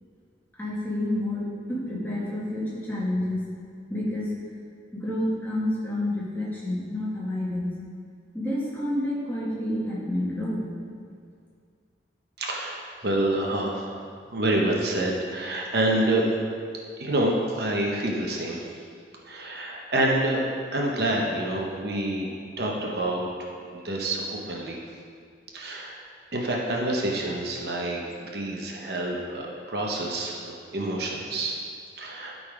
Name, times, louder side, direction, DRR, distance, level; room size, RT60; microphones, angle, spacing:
voice 1, 0.6-3.4 3.9-4.3 4.9-7.7 8.3-10.7, left 1 dB, 10° left, -7 dB, 1.8 m, -29 dB
voice 2, 12.4-16.2 17.0-18.7 19.3-22.3 22.6-24.8 25.5-25.9 26.3-28.0 28.3-31.6 32.0-32.3, right 1 dB, 60° right, -1 dB, 0.9 m, -27 dB
12.0 x 4.0 x 4.8 m, 2.2 s
head